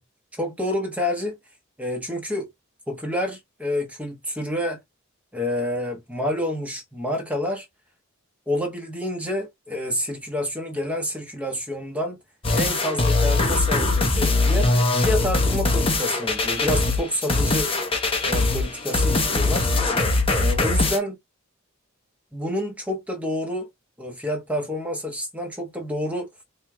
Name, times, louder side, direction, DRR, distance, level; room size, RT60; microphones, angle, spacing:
voice 1, 0.4-1.4 1.8-2.5 2.9-4.8 5.3-7.7 8.5-12.2 12.5-17.7 18.2-19.7 20.3-21.2 22.3-23.7 24.0-26.3, left 1 dB, 5° right, 1.0 m, -28 dB
sound 1, 12.4-21.0, left 2 dB, 25° left, 0.8 m, -21 dB
4.4 x 3.2 x 2.2 m
head